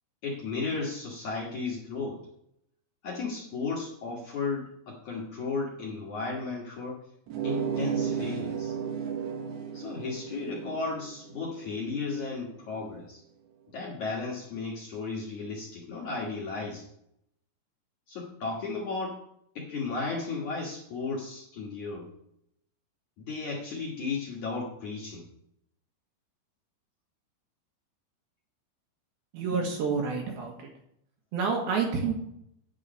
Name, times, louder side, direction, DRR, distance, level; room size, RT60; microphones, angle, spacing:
voice 1, 0.2-2.2 3.0-7.0 7.4-8.7 9.7-13.2 13.7-16.8 18.1-19.2 19.6-22.1 23.2-25.3, left 4 dB, 60° left, -3 dB, 2.1 m, -34 dB
sound 1, 7.3-12.5, right 7 dB, 85° right, 1.6 m, -34 dB
voice 2, 29.3-30.7 31.3-32.1, right 5 dB, 65° right, 1 dB, 2.9 m, -28 dB
9.9 x 4.9 x 8.0 m, 0.75 s
omnidirectional pair, 5.3 m